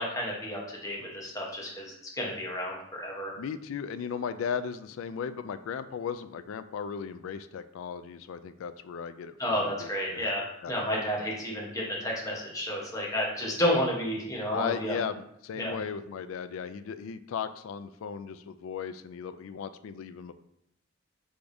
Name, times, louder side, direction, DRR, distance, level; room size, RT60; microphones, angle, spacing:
voice 1, 0.0-3.3 9.4-15.0 15.5-15.8, equal, 15° left, -3 dB, 1.0 m, -31 dB
voice 2, 3.4-10.3 10.6-10.7 14.5-20.3, left 7 dB, 90° left, 12 dB, 0.3 m, -36 dB
4.9 x 3.5 x 2.6 m, 0.75 s
head